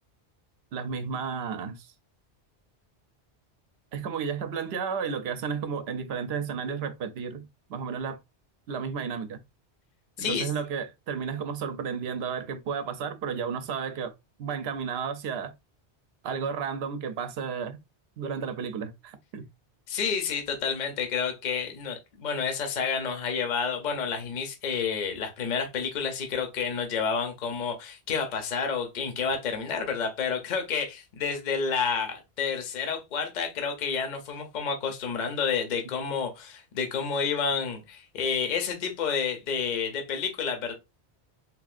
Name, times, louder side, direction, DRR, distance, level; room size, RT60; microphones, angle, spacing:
voice 1, 0.7-1.9 3.9-8.2 8.7-9.4 10.2-14.1 14.4-15.5 16.2-17.8 18.2-19.5, right 6 dB, 70° right, 0.8 m, -32 dB
voice 2, 10.2-10.5 19.9-40.7, left 6 dB, 50° left, 0.7 m, -30 dB
3.6 x 2.4 x 2.4 m
omnidirectional pair, 1.1 m